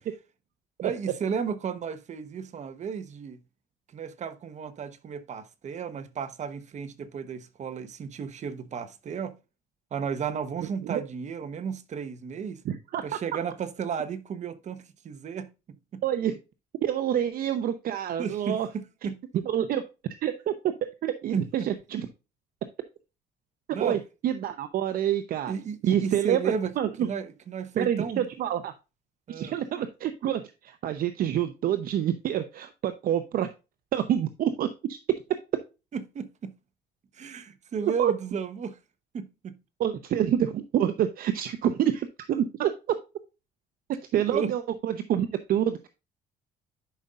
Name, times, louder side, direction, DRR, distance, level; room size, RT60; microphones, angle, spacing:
voice 1, 0.8-3.4 3.9-9.3 9.9-12.6 13.0-16.0 18.2-19.2 21.3-21.7 23.7-24.0 25.5-26.7 27.0-28.2 29.3-29.5 35.9-36.5 37.1-38.8 39.1-39.5 44.3-44.5, right 6 dB, 45° right, 1.1 m, -33 dB
voice 2, 12.6-13.0 16.0-16.3 16.8-18.7 19.5-19.8 20.2-20.5 21.0-22.1 23.8-25.5 25.8-26.4 26.8-26.9 27.8-28.7 29.3-33.5 33.9-35.0 37.8-38.1 39.8-42.7 44.1-45.9, right 10 dB, 60° right, 0.7 m, -27 dB
10.5 x 5.4 x 2.4 m
cardioid pair, 110°, 17 cm